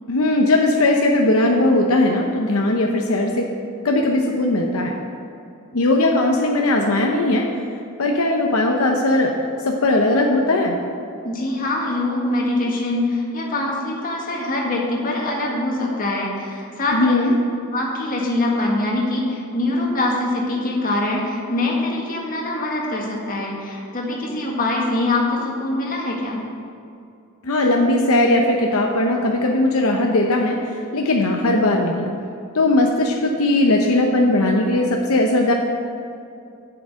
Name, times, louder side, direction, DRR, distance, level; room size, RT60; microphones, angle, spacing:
voice 1, 0.1-3.5 3.8-4.9 5.7-7.5 8.0-9.3 9.6-10.8 16.9-17.3 27.4-32.1 32.5-35.5, left 2 dB, 70° left, 1 dB, 0.8 m, -18 dB
voice 2, 11.2-17.1 17.7-26.4, left 2 dB, 40° left, -2 dB, 1.7 m, -23 dB
8.7 x 5.9 x 7.4 m, 2.6 s
head